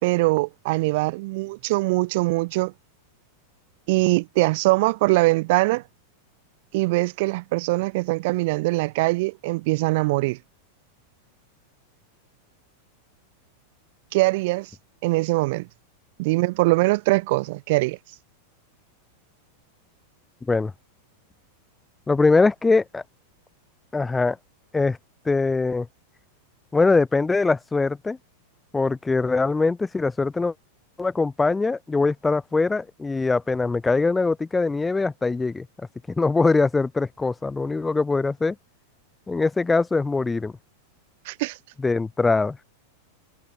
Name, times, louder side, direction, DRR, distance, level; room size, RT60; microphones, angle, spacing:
voice 1, 0.0-2.7 3.9-5.8 6.7-10.4 14.1-14.7 15.0-15.7 16.2-18.0 41.2-41.6, right 23 dB, 50° right, 1.3 m, -22 dB
voice 2, 20.4-20.7 22.1-23.0 23.9-24.4 24.7-25.0 25.3-25.9 26.7-28.2 28.7-30.5 31.0-35.7 36.1-38.6 39.3-40.5 41.8-42.6, left 3 dB, 10° left, 1.9 m, -22 dB
figure-of-eight pair, 90°, 0 cm